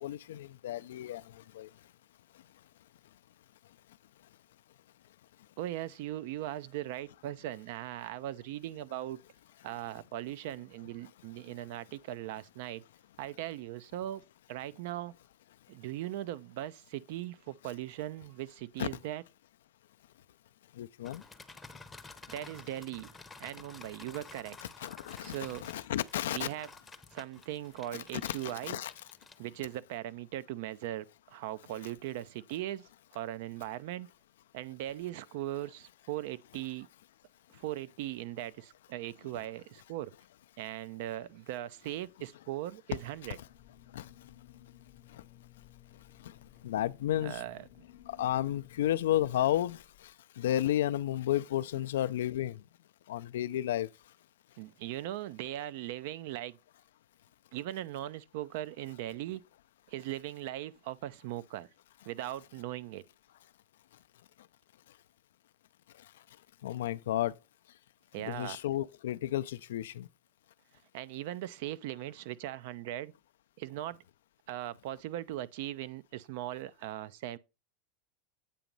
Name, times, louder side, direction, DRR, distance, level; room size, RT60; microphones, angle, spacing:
voice 1, 0.0-1.2 1.6-1.7 18.8-18.9 20.8-21.2 24.8-25.3 25.6-26.5 28.1-28.4 28.7-28.9 43.9-44.0 46.6-47.4 48.2-49.8 50.4-52.6 53.1-53.9 66.6-67.3 68.2-70.1, left 12 dB, 85° left, 0.3 m, -32 dB
voice 2, 5.6-9.2 9.6-12.8 13.2-14.2 14.5-15.1 15.7-19.2 22.3-23.1 23.4-24.6 25.2-25.6 26.3-26.7 27.1-28.8 29.4-34.1 34.5-36.9 37.5-40.1 40.6-43.4 47.2-47.7 54.6-56.6 57.5-59.4 59.9-61.7 62.1-63.0 68.1-68.6 70.9-73.1 73.6-74.0 74.5-77.4, right 13 dB, 70° right, 0.4 m, -39 dB
sound 1, 21.0-29.8, left 3 dB, 10° left, 0.7 m, -52 dB
sound 2, 43.0-50.1, left 13 dB, 50° left, 0.7 m, -57 dB
8.4 x 3.0 x 5.2 m
supercardioid pair, 115°, 0 cm